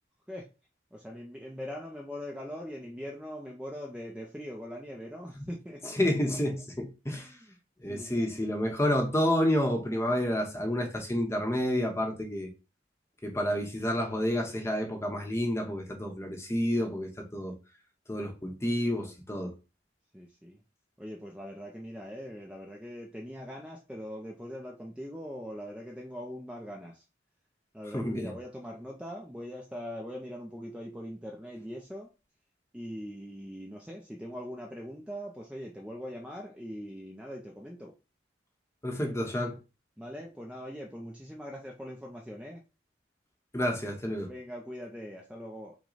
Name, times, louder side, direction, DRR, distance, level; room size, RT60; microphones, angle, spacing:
voice 1, 0.9-5.8 7.1-7.4 7.9-8.2 20.1-20.6 21.0-27.0 27.7-32.1 32.7-37.9 40.0-42.6 44.3-45.8, equal, 5° right, 0.5 m, -41 dB
voice 2, 5.8-7.3 7.8-12.5 13.2-17.6 18.1-19.5 27.9-28.4 38.8-39.6 43.5-44.3, left 1 dB, 15° left, 0.9 m, -29 dB
5.9 x 2.2 x 4.0 m
head